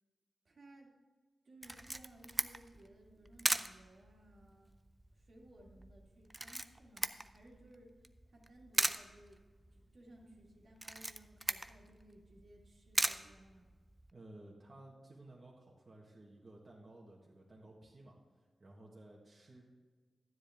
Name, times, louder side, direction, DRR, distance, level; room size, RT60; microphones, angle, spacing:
voice 1, 0.4-0.9 1.4-4.7 5.1-7.9 8.3-9.4 9.7-13.7, right 1 dB, 55° right, -1 dB, 2.1 m, -60 dB
Camera, 1.6-14.1, right 1 dB, 15° right, 0.4 m, -40 dB
voice 2, 14.1-19.7, right 1 dB, 35° right, -4 dB, 1.5 m, -56 dB
12.5 x 10.0 x 3.6 m, 1.5 s
wide cardioid pair, 160°, 0 cm